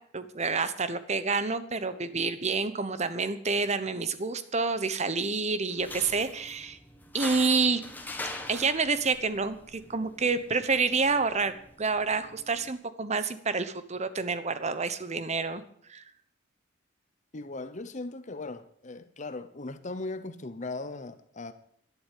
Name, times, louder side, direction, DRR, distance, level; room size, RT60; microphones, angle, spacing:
voice 1, 0.1-6.8 7.1-7.8 8.5-15.6 15.9-16.0, right 4 dB, 35° right, 1.0 m, -28 dB
sound 1, 5.7-12.7, left 2 dB, 10° left, 1.5 m, -43 dB
voice 2, 17.3-21.5, left 2 dB, 40° left, 0.8 m, -38 dB
11.5 x 11.0 x 8.4 m
head